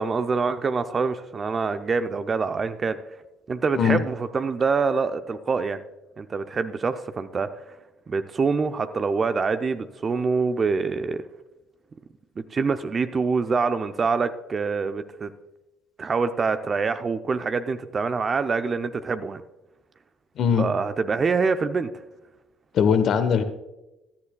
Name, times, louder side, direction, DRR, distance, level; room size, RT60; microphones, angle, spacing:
voice 1, 0.0-3.0 3.5-5.8 6.2-7.5 8.1-11.2 12.4-15.3 16.0-19.4 20.6-21.9, right 4 dB, 40° right, 10 dB, 0.6 m, -25 dB
voice 2, 20.4-20.7 22.7-23.4, left 7 dB, 55° left, 10 dB, 1.1 m, -20 dB
16.5 x 11.5 x 2.3 m, 0.99 s
hypercardioid pair, 60°, 0 cm